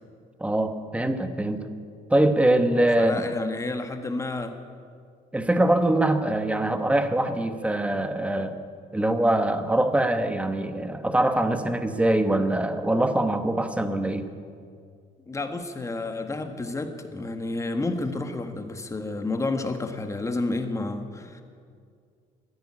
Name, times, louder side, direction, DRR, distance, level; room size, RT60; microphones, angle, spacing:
voice 1, 0.4-1.6 2.1-3.2 5.3-8.6 8.9-14.3, right 1 dB, 5° right, 9 dB, 1.1 m, -23 dB
voice 2, 3.0-4.5 15.3-21.4, left 2 dB, 15° left, 7 dB, 1.4 m, -30 dB
13.5 x 10.5 x 9.9 m, 2.2 s
cardioid pair, 110°, 17 cm